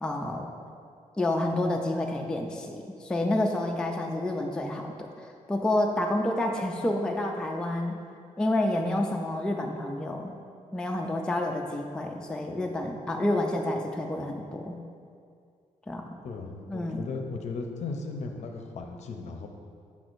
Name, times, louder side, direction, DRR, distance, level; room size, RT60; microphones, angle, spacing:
voice 1, 0.0-0.5 1.2-8.0 8.4-10.3 10.7-14.8 15.9-16.2 16.7-17.1, left 1 dB, 5° left, 1 dB, 0.3 m, -29 dB
voice 2, 16.2-19.5, left 4 dB, 60° left, 4 dB, 0.6 m, -36 dB
7.0 x 6.0 x 2.5 m, 2.3 s
wide cardioid pair, 170°, 13 cm